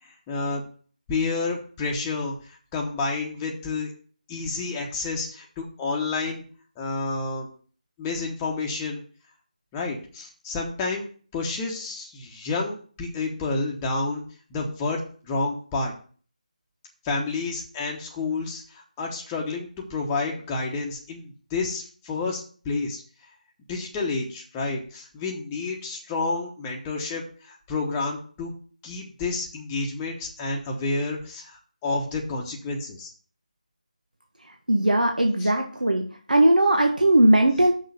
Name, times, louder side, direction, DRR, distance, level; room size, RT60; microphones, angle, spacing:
voice 1, 0.0-0.6 1.1-3.9 4.3-6.4 6.8-7.5 8.0-9.0 9.7-11.1 11.3-14.2 14.5-15.9 17.0-23.0 23.7-28.5 28.8-33.1 35.4-35.5, left 3 dB, 10° left, -1 dB, 1.1 m, -30 dB
voice 2, 34.7-36.0 36.3-37.7, right 1 dB, 80° right, 3 dB, 1.5 m, -19 dB
6.4 x 5.6 x 7.1 m, 0.43 s
figure-of-eight pair, 160°, 4 cm